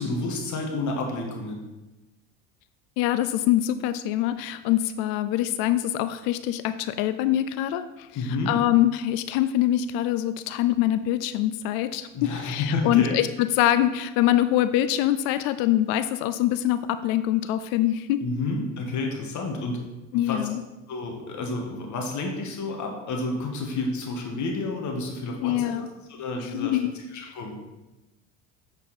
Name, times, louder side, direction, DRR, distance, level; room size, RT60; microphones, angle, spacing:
voice 1, 0.0-1.6 8.1-8.5 12.1-13.2 18.2-19.8 20.1-20.5 20.9-25.8 26.1-27.6, left 2 dB, 50° left, 1 dB, 1.6 m, -30 dB
voice 2, 3.0-18.2 20.1-20.6 25.4-25.9 26.4-26.9, left 13 dB, 65° left, 12 dB, 0.5 m, -24 dB
8.6 x 4.4 x 4.2 m, 1.0 s
hypercardioid pair, 80°, 39 cm